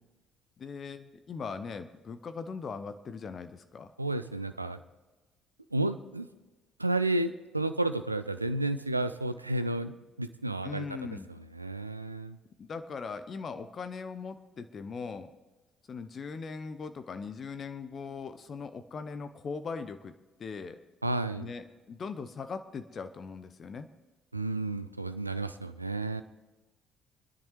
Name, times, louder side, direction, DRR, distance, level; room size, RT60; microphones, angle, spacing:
voice 1, 0.6-3.9 10.6-11.3 12.6-15.3 15.9-20.1 20.4-20.8 21.4-23.9, left 5 dB, 40° left, 10 dB, 0.7 m, -40 dB
voice 2, 4.0-4.8 5.7-6.3 6.8-12.4 21.0-21.5 24.3-26.2, right 2 dB, 85° right, 11 dB, 0.4 m, -32 dB
26.5 x 10.5 x 3.2 m, 1.2 s
figure-of-eight pair, 50°, 0 cm